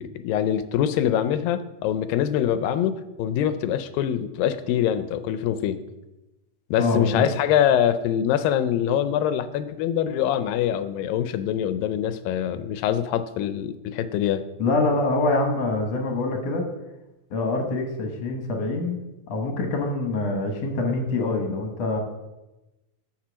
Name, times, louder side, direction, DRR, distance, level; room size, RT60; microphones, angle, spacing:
voice 1, 0.0-5.8 6.7-14.4, left 10 dB, 85° left, 11 dB, 2.3 m, -24 dB
voice 2, 6.8-7.2 14.6-16.6 17.3-19.0 19.3-22.0, left 2 dB, 60° left, 3 dB, 1.9 m, -25 dB
7.4 x 7.3 x 6.2 m, 1.0 s
omnidirectional pair, 4.0 m